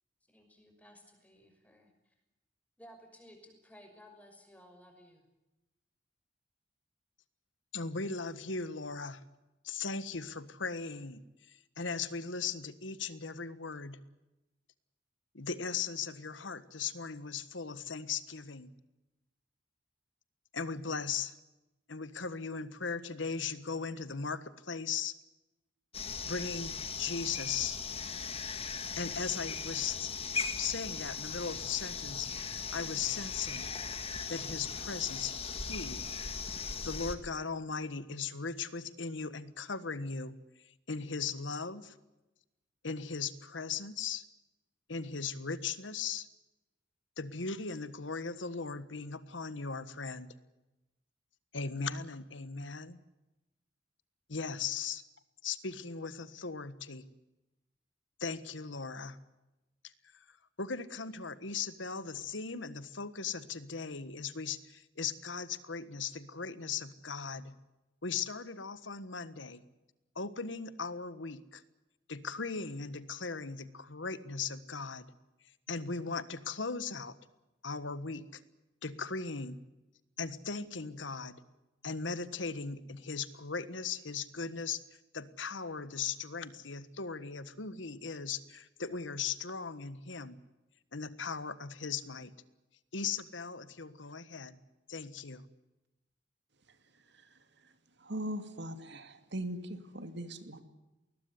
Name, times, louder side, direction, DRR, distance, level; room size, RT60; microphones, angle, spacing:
voice 1, 0.3-2.1 2.8-5.3, equal, 10° left, 4 dB, 6.1 m, -57 dB
voice 2, 7.7-9.2 9.6-11.2 11.5-14.0 15.3-18.7 20.5-21.3 21.9-25.2 26.2-27.8 29.0-30.1 30.6-33.7 34.3-36.1 36.8-40.4 40.6-41.9 42.8-44.2 44.9-46.3 47.2-50.3 51.5-53.0 54.3-55.0 55.4-57.1 58.2-59.2 59.8-59.9 60.6-67.5 68.0-69.6 70.1-71.6 72.1-75.1 75.7-77.1 77.6-78.4 78.8-79.6 80.2-81.4 81.8-84.8 85.1-90.4 90.9-92.3 92.9-94.6 94.9-95.4, left 5 dB, 75° left, 14 dB, 1.5 m, -38 dB
sound 1, 25.9-37.2, left 5 dB, 30° left, 2.1 m, -38 dB
voice 3, 97.1-97.7 98.0-100.6, right 1 dB, 65° right, 9 dB, 2.5 m, -41 dB
21.0 x 20.0 x 9.6 m, 0.99 s
head